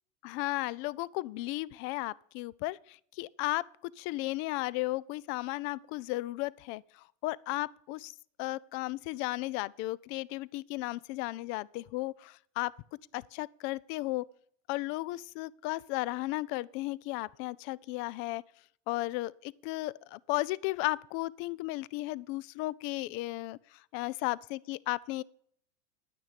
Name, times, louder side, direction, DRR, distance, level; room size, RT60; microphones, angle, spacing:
voice 1, 0.2-3.7 4.0-8.1 8.4-12.7 13.1-14.2 14.7-18.4 18.9-25.2, left 19 dB, 40° left, 0.4 m, -35 dB
11.0 x 9.4 x 5.1 m
supercardioid pair, 130°, 33 cm